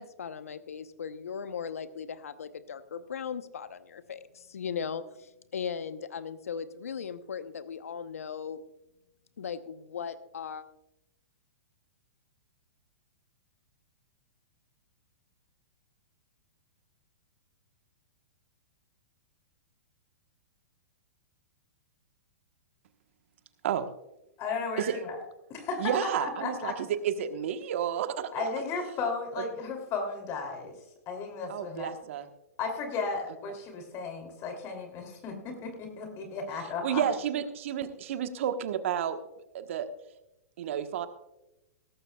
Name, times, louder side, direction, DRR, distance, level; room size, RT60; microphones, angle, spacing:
voice 1, 0.0-8.6 9.4-10.6, left 7 dB, 75° left, 12 dB, 0.9 m, -38 dB
voice 2, 24.4-25.2 25.5-25.9 26.2-26.8 28.3-30.7 31.1-31.9 32.6-37.0, left 4 dB, 35° left, 4 dB, 3.0 m, -35 dB
voice 3, 25.8-28.3 31.5-32.3 36.8-39.2 39.5-39.9 40.6-41.1, right 9 dB, 60° right, 9 dB, 1.3 m, -31 dB
17.5 x 14.5 x 2.3 m, 0.92 s
hypercardioid pair, 115°, 8 cm